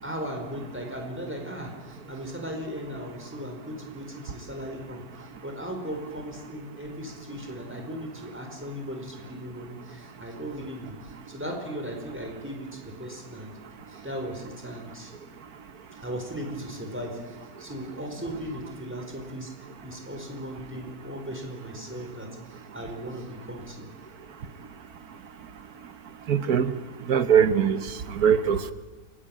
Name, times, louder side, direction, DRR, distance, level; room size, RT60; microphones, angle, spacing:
voice 1, 0.0-13.5 13.9-15.1 16.0-23.9, equal, 5° right, 2 dB, 4.7 m, -37 dB
voice 2, 26.3-26.7 27.1-27.8 28.1-28.7, right 8 dB, 60° right, 12 dB, 1.5 m, -21 dB
29.0 x 15.5 x 9.0 m, 1.3 s
omnidirectional pair, 1.8 m